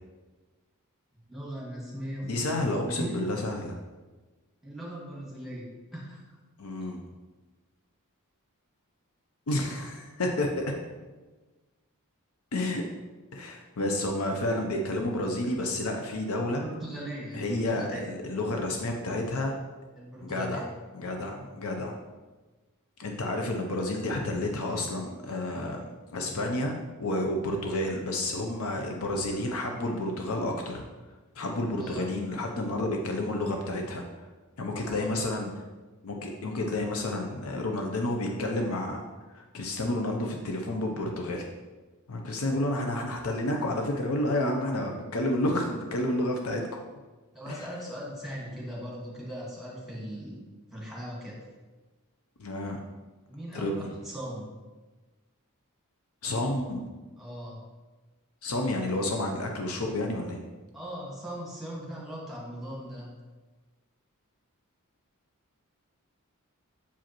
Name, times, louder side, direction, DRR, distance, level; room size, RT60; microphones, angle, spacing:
voice 1, 1.3-2.6 2.8-3.2 4.6-6.2 16.6-18.0 20.0-20.7 31.8-32.0 34.8-35.3 47.3-51.4 53.3-54.5 57.2-57.6 60.7-63.1, equal, ahead, -5 dB, 1.6 m, -39 dB
voice 2, 2.2-3.7 6.6-7.0 9.5-10.6 12.5-12.8 13.3-16.6 17.3-19.6 20.2-20.6 20.9-22.0 23.0-25.8 26.1-30.8 31.3-34.0 34.6-35.5 36.0-39.0 39.3-41.5 42.1-46.7 47.5-47.7 52.4-52.8 53.5-53.9 56.2-56.8 58.4-60.4, left 1 dB, 70° left, 2 dB, 0.6 m, -30 dB
6.9 x 4.9 x 3.0 m, 1.3 s
head